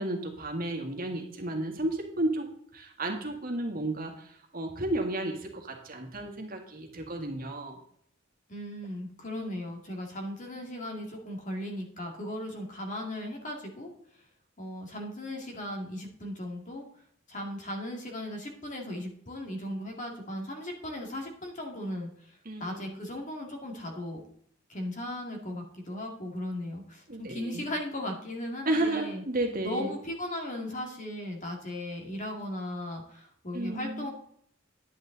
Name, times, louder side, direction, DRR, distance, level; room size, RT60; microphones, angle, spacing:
voice 1, 0.0-7.8 22.4-23.0 27.1-27.7 28.6-29.9 33.5-34.1, right 1 dB, 45° right, 2 dB, 1.8 m, -33 dB
voice 2, 8.5-13.9 14.6-16.8 17.3-22.3 22.6-24.2 24.7-29.2 29.6-34.1, left 1 dB, 40° left, 2 dB, 2.3 m, -37 dB
10.5 x 9.0 x 4.0 m, 0.65 s
head